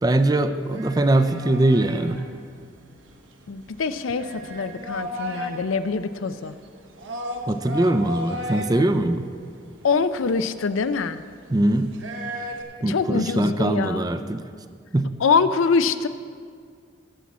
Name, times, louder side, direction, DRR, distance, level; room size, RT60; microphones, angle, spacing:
voice 1, 0.0-2.2 7.5-9.3 11.5-11.9 12.8-14.4 14.9-15.1, right 1 dB, 20° right, 10 dB, 0.4 m, -21 dB
sound 1, 0.6-12.6, equal, 75° right, 1.2 m, -36 dB
voice 2, 3.5-6.6 9.8-11.2 12.9-14.0 15.2-16.1, left 5 dB, 85° left, 12 dB, 0.5 m, -24 dB
17.5 x 7.4 x 4.2 m, 2.1 s
head